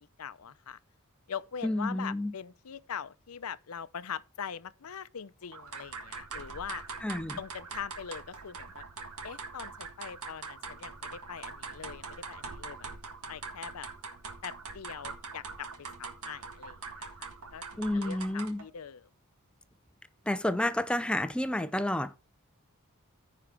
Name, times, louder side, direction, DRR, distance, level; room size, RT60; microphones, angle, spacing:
voice 1, 0.2-0.8 1.3-6.8 7.4-8.8 9.2-12.8 13.3-13.9 14.4-15.7 16.0-19.1, left 7 dB, 75° left, 0.6 m, -42 dB
voice 2, 1.6-2.3 7.0-7.4 17.8-18.6 20.3-22.2, left 1 dB, 5° left, 0.4 m, -30 dB
sound 1, 5.5-18.7, right 4 dB, 85° right, 1.8 m, -43 dB
14.5 x 4.9 x 3.4 m
head